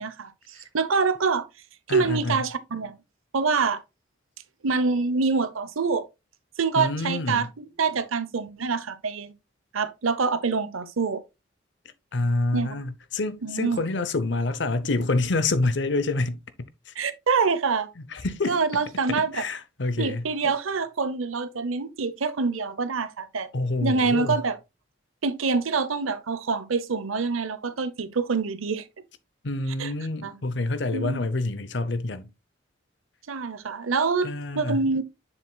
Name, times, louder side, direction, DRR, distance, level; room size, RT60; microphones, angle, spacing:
voice 1, 0.0-1.5 1.9-2.9 3.3-3.8 4.6-6.1 6.6-9.3 9.7-11.2 12.5-12.7 13.4-13.9 17.0-17.9 18.5-19.4 20.0-23.5 23.8-24.6 25.2-28.8 29.8-29.9 30.2-30.4 30.9-31.2 33.3-34.3 34.5-35.0, right 4 dB, 90° right, 0.8 m, -26 dB
voice 2, 1.9-2.4 6.8-7.5 12.1-16.4 16.9-17.0 18.1-18.6 19.1-20.3 23.5-24.4 29.4-32.3 34.2-34.8, left 2 dB, 60° left, 0.7 m, -27 dB
7.4 x 6.4 x 2.3 m
head